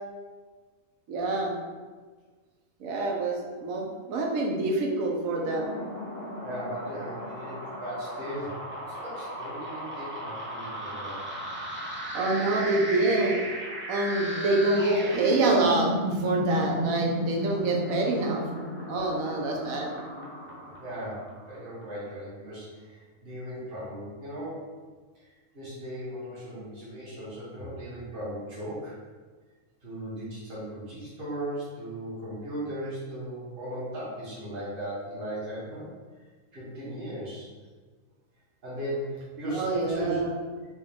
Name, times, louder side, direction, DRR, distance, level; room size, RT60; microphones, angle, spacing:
voice 1, 1.1-1.5 2.8-5.7 12.1-13.4 13.9-18.4 18.9-19.9 39.5-40.3, right 2 dB, 90° right, 0 dB, 1.1 m, -26 dB
sound 1, 5.2-21.6, equal, 15° right, 0.4 m, -34 dB
voice 2, 6.4-8.6 9.0-11.2 18.3-18.4 20.8-24.7 25.1-29.0 29.8-35.9 36.5-37.5 38.6-40.2, right 1 dB, 45° right, -8 dB, 1.4 m, -37 dB
4.4 x 2.3 x 3.6 m, 1.4 s
omnidirectional pair, 1.4 m